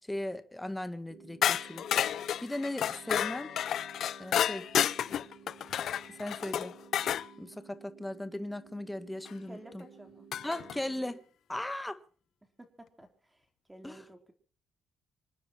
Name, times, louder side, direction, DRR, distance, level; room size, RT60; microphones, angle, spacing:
voice 1, 0.0-1.9 2.4-3.6 4.2-4.7 6.1-6.7 7.4-9.8 10.4-12.0 13.8-14.1, left 1 dB, 10° left, 1.8 m, -38 dB
sound 1, 1.1-11.1, right 6 dB, 80° right, 4.5 m, -55 dB
sound 2, 1.4-7.3 9.3-9.4 10.3-10.8, left 10 dB, 70° left, 0.7 m, -31 dB
voice 2, 9.5-10.3 12.6-14.3, right 1 dB, 10° right, 4.2 m, -52 dB
27.0 x 9.9 x 4.6 m
cardioid pair, 90°, 0 cm